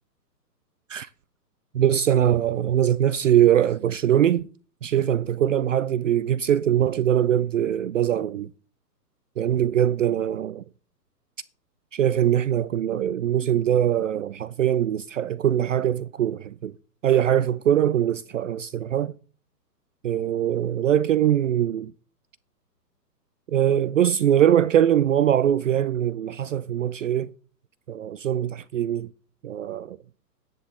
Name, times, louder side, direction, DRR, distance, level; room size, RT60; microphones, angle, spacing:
voice 1, 1.7-4.5 4.8-8.5 9.4-10.6 11.9-16.7 17.0-19.1 20.0-21.9 23.5-27.3 27.9-29.1 29.4-30.0, right 10 dB, 50° right, 0.5 m, -22 dB
10.5 x 10.5 x 3.7 m
hypercardioid pair, 140°, 49 cm